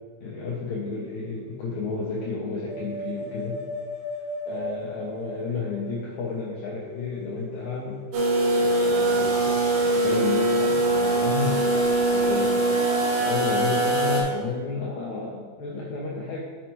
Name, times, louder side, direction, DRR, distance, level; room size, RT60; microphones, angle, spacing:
voice 1, 0.2-3.6 4.5-8.0 8.6-12.7 13.2-16.4, left 4 dB, 85° left, -4 dB, 1.6 m, -32 dB
sound 1, 0.9-2.0 2.3-12.3, left 1 dB, 25° left, 2.3 m, -39 dB
sound 2, 8.1-14.2, right 1 dB, 65° right, 2.9 m, -22 dB
8.5 x 6.7 x 3.1 m, 1.5 s
omnidirectional pair, 4.6 m